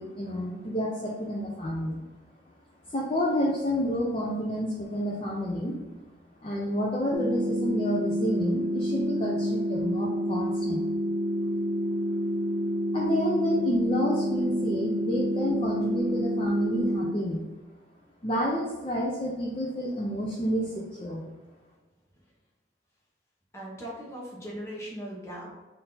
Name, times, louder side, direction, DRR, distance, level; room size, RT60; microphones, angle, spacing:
voice 1, 0.0-2.0 2.9-5.7 6.4-10.9 12.9-17.4 18.2-21.2, equal, 30° left, -4 dB, 0.5 m, -29 dB
sound 1, 7.1-17.1, equal, 80° right, 0.6 m, -28 dB
voice 2, 23.5-25.5, equal, 15° left, -4 dB, 1.1 m, -39 dB
4.1 x 2.7 x 3.9 m, 1.2 s
head